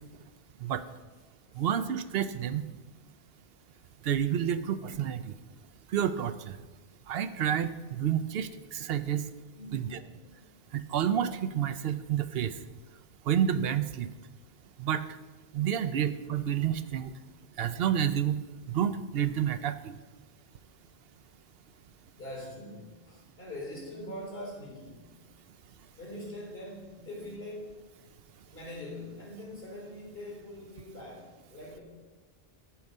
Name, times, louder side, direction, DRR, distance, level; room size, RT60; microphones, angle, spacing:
voice 1, 1.6-2.6 4.0-5.3 5.9-6.6 7.1-9.2 9.7-10.0 10.7-12.5 13.3-14.1 14.8-15.0 15.5-17.1 17.6-18.4 18.7-20.0, right 9 dB, 70° right, 11 dB, 0.8 m, -29 dB
voice 2, 9.5-10.5 22.2-25.1 26.0-27.9 28.5-31.8, left 1 dB, 70° left, -2 dB, 3.9 m, -43 dB
14.0 x 4.7 x 5.4 m, 1.2 s
omnidirectional pair, 1.1 m